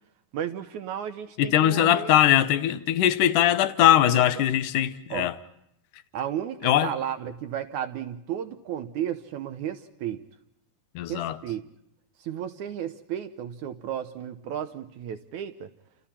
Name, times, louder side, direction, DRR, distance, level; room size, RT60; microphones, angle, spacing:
voice 1, 0.3-2.2 3.9-4.0 4.3-4.4 5.1-5.3 6.1-10.2 11.1-11.6 12.2-15.7, right 10 dB, 80° right, 1.7 m, -33 dB
voice 2, 1.4-5.3 6.6-6.9 11.0-11.4, left 11 dB, 70° left, 2.0 m, -21 dB
30.0 x 28.0 x 4.3 m
omnidirectional pair, 4.8 m